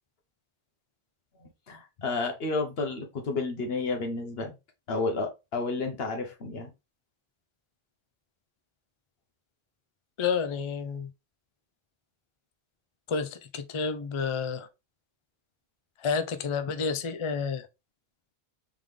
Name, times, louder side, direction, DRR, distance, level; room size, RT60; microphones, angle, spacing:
voice 1, 1.4-4.5 4.9-6.7, left 3 dB, 70° left, 1.2 m, -31 dB
voice 2, 10.2-11.1 13.1-14.7 16.0-17.7, left 5 dB, 45° left, 0.4 m, -30 dB
3.7 x 3.5 x 3.2 m
omnidirectional pair, 1.1 m